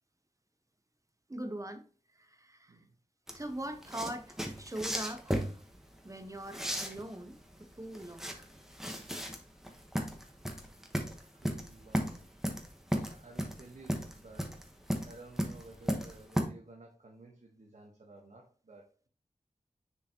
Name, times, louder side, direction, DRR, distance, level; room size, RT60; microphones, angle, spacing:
voice 1, 1.3-1.8 2.1-2.8 3.3-5.6 6.0-8.4 13.0-13.2, right 1 dB, 25° right, 0.7 m, -42 dB
sound 1, 3.3-16.4, equal, 5° right, 1.2 m, -35 dB
voice 2, 11.0-12.3 13.0-14.6 15.0-19.1, right 2 dB, 70° right, 1.2 m, -54 dB
6.9 x 4.7 x 2.9 m
wide cardioid pair, 60°, 13 cm